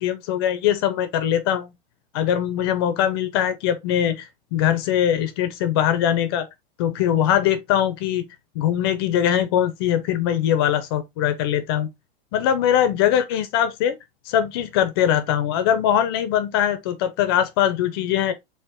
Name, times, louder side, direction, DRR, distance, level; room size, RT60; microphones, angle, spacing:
voice 1, 0.0-1.7 2.1-6.5 6.8-8.3 8.5-11.9 12.3-14.0 14.3-18.3, left 10 dB, 25° left, 0.4 m, -21 dB
4.7 x 2.9 x 3.5 m
supercardioid pair, 175°, 29 cm